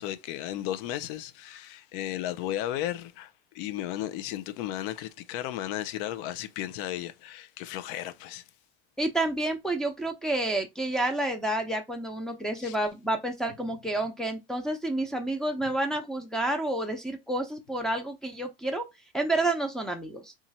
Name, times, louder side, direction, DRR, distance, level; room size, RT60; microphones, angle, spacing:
voice 1, 0.0-8.4 12.6-12.8, left 13 dB, 70° left, 0.6 m, -34 dB
voice 2, 9.0-18.8 19.1-20.3, right 2 dB, ahead, 0.7 m, -29 dB
2.9 x 2.5 x 4.1 m
supercardioid pair, 110°, 30 cm